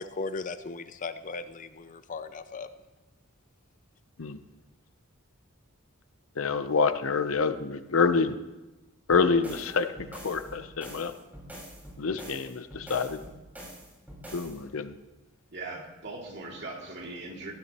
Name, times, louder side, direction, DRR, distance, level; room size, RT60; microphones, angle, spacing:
voice 1, 0.0-2.7, left 4 dB, 40° left, 11 dB, 0.5 m, -37 dB
voice 2, 6.4-8.3 9.1-11.1 12.0-13.2 14.3-14.9, left 4 dB, 75° left, 10 dB, 0.7 m, -27 dB
sound 1, 9.1-14.6, equal, 10° right, 5.0 m, -45 dB
voice 3, 15.5-17.5, right 2 dB, 55° right, -1 dB, 2.6 m, -39 dB
17.5 x 12.5 x 3.0 m, 1.1 s
head